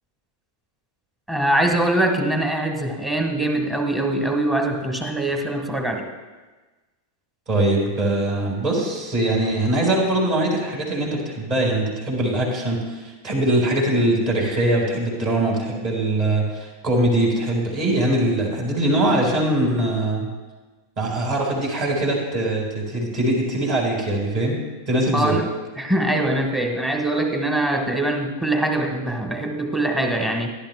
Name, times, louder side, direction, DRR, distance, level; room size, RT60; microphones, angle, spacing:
voice 1, 1.3-6.1 25.1-25.5 25.8-30.5, right 1 dB, 10° right, 3 dB, 1.4 m, -23 dB
voice 2, 7.5-20.3 21.0-24.6 24.9-25.4, right 1 dB, 40° right, -1 dB, 3.9 m, -22 dB
16.5 x 11.0 x 2.2 m, 1.3 s
figure-of-eight pair, 90°, 0 cm